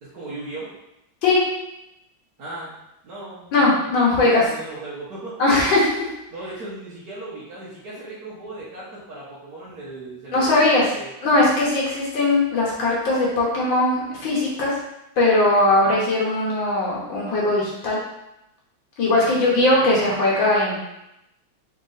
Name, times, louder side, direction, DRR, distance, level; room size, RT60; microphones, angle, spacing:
voice 1, 0.0-0.7 2.4-2.8 3.0-5.4 6.3-11.1 19.2-19.9, right 2 dB, 55° right, -10 dB, 1.4 m, -37 dB
voice 2, 3.5-4.4 5.4-6.1 10.3-10.8 11.2-14.8 15.2-18.0 19.0-20.8, left 2 dB, 70° left, -4 dB, 1.7 m, -19 dB
4.2 x 3.3 x 3.9 m, 0.88 s
omnidirectional pair, 2.2 m